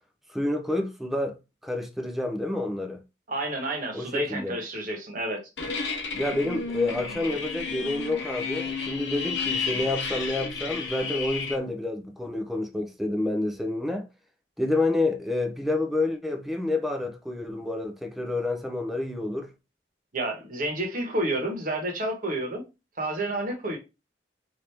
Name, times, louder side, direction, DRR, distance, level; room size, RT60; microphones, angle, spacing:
voice 1, 0.3-1.4 1.6-3.0 3.9-4.6 6.1-14.0 14.6-19.5, left 2 dB, ahead, 0.4 m, -29 dB
voice 2, 3.3-5.4 20.1-22.6 23.0-23.8, right 1 dB, 50° right, 1.0 m, -30 dB
sound 1, 5.6-11.6, left 5 dB, 75° left, 0.7 m, -32 dB
2.9 x 2.5 x 3.3 m
head